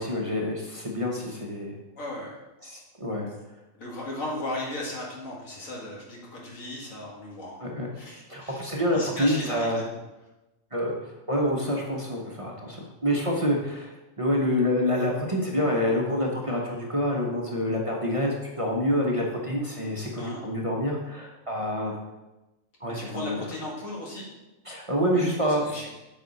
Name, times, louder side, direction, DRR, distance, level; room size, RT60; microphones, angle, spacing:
voice 1, 0.0-1.8 2.6-3.3 7.6-7.9 8.3-9.8 10.7-22.0 22.8-23.4 24.7-25.8, equal, 25° right, -2 dB, 0.9 m, -27 dB
voice 2, 1.9-2.4 3.7-7.6 7.9-9.9 20.1-20.4 23.0-24.3 25.1-25.9, left 1 dB, 75° left, -3 dB, 2.2 m, -36 dB
8.4 x 5.6 x 4.1 m, 1.0 s
omnidirectional pair, 1.4 m